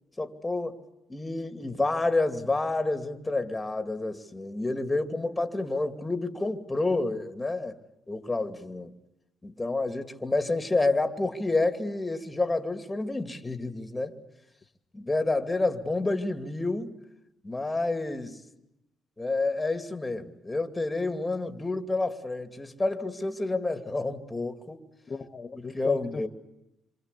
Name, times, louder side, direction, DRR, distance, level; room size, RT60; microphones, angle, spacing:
voice 1, 0.2-0.8 1.1-7.8 8.1-8.9 9.4-14.2 14.9-16.9 17.4-18.4 19.2-24.8 25.5-26.3, left 2 dB, 15° left, 2.5 m, -29 dB
voice 2, 25.1-26.3, left 5 dB, 35° left, 1.5 m, -35 dB
27.5 x 25.5 x 8.4 m
cardioid pair, 90°, 0 cm